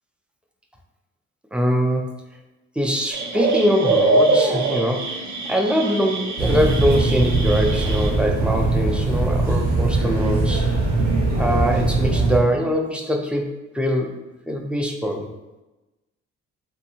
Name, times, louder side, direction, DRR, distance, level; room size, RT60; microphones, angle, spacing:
voice 1, 1.5-2.0 2.8-5.1 5.4-10.7 11.4-13.5 13.7-14.1 14.5-15.3, equal, 5° right, 2 dB, 0.3 m, -22 dB
sound 1, 3.1-8.1, right 2 dB, 70° right, 0.6 m, -23 dB
sound 2, 6.4-12.4, right 3 dB, 85° right, 1.0 m, -21 dB
2.7 x 2.5 x 2.7 m, 1.0 s
cardioid pair, 90°, 30 cm